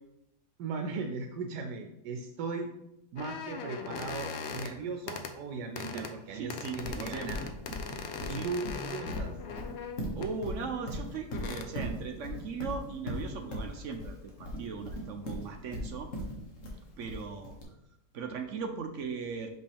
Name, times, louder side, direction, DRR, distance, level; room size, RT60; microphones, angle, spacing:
voice 1, 0.6-2.7 3.1-7.4 8.3-9.4, right 4 dB, 80° right, 3 dB, 1.2 m, -38 dB
sound 1, 3.2-4.7 5.1-5.3 5.8-6.1 6.5-10.4 11.2-11.7, left 5 dB, 75° left, 0.6 m, -40 dB
voice 2, 5.9-7.4 8.2-8.5 10.1-16.1 17.0-17.5 18.1-19.5, right 5 dB, 65° right, 5 dB, 0.8 m, -38 dB
Livestock farm animals working animals, 6.8-17.6, equal, 50° left, 1.6 m, -38 dB
6.1 x 5.3 x 3.4 m, 0.84 s
omnidirectional pair, 1.8 m